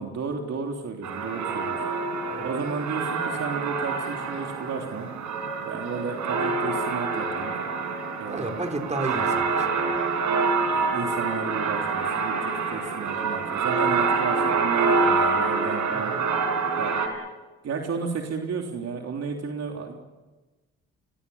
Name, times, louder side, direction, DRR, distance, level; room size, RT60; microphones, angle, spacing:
voice 1, 0.0-1.8 2.4-5.1 5.7-7.5 8.2-8.6 10.7-16.1 16.8-16.9 17.6-20.0, right 5 dB, 55° right, 2 dB, 3.4 m, -33 dB
sound 1, 1.0-17.1, right 4 dB, 75° right, 5.1 m, -26 dB
voice 2, 8.3-10.0 15.9-16.2, right 2 dB, 25° right, 5 dB, 4.5 m, -33 dB
30.0 x 22.5 x 7.2 m, 1.2 s
cardioid pair, 90°, 30 cm